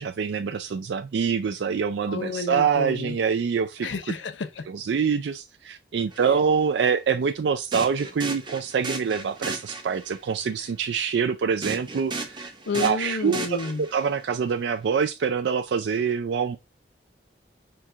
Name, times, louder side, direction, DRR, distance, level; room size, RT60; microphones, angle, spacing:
voice 1, 0.0-3.9 4.7-12.5 12.8-16.6, right 6 dB, 75° right, 0.4 m, -25 dB
voice 2, 2.1-3.2 3.8-4.6 12.7-13.8, left 4 dB, 85° left, 0.6 m, -30 dB
sound 1, 6.1-6.3 7.7-10.2 11.6-14.2, right 3 dB, 25° right, 0.7 m, -35 dB
4.6 x 2.3 x 3.7 m
head